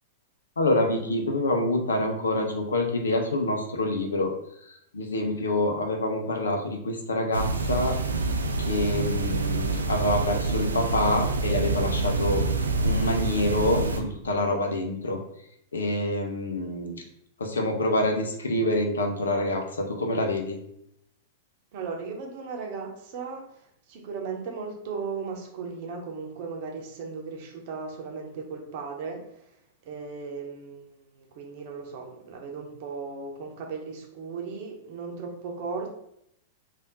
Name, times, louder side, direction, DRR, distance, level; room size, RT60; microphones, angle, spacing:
voice 1, 0.6-4.3 4.9-8.0 8.6-12.4 12.8-15.2 15.7-17.0 17.4-20.6, left 1 dB, 70° left, 3 dB, 0.7 m, -26 dB
sound 1, 7.3-14.0, right 3 dB, 75° right, 0.4 m, -27 dB
voice 2, 21.7-23.4 23.9-29.2 29.9-36.0, right 5 dB, 45° right, 1 dB, 0.8 m, -36 dB
3.5 x 2.5 x 3.9 m, 0.75 s
figure-of-eight pair, 95°, 0 cm